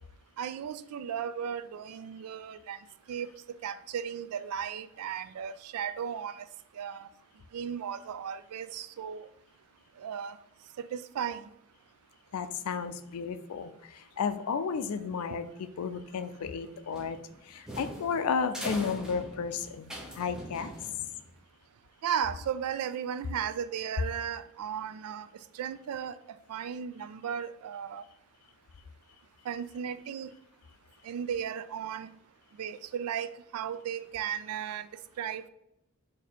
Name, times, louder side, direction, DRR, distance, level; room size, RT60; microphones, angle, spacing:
voice 1, 0.4-2.8 3.1-3.3 3.6-6.4 6.7-7.1 7.5-9.3 10.0-10.4 10.8-11.5 14.8-14.9 15.3-15.4 22.0-25.3 25.5-28.0 29.5-30.3 31.0-32.1 32.6-34.9 35.2-35.5, right 8 dB, 85° right, 0.3 m, -35 dB
voice 2, 12.3-17.2 17.4-20.7, left 6 dB, 85° left, 0.4 m, -33 dB
sound 1, 16.9-21.4, right 1 dB, 5° right, 0.7 m, -42 dB
4.1 x 2.7 x 4.3 m
head